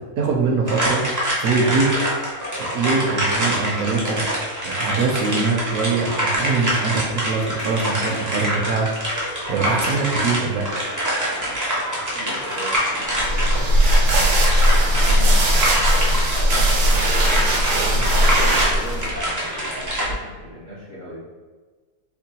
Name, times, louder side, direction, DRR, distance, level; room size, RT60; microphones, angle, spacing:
voice 1, 0.2-1.9 2.6-4.3 4.6-8.9 9.5-10.7, right 4 dB, 70° right, 1 dB, 1.0 m, -23 dB
sound 1, 0.7-20.0, equal, 30° right, 0.3 m, -25 dB
Human group actions, 5.9-20.2, equal, 80° left, 1.5 m, -41 dB
voice 2, 12.1-13.6 15.0-15.9 16.3-17.4 17.6-21.2, equal, 50° left, -8 dB, 0.6 m, -37 dB
sound 2, 13.1-19.1, right 1 dB, 90° right, 1.3 m, -18 dB
4.4 x 2.2 x 2.8 m, 1.4 s
omnidirectional pair, 1.7 m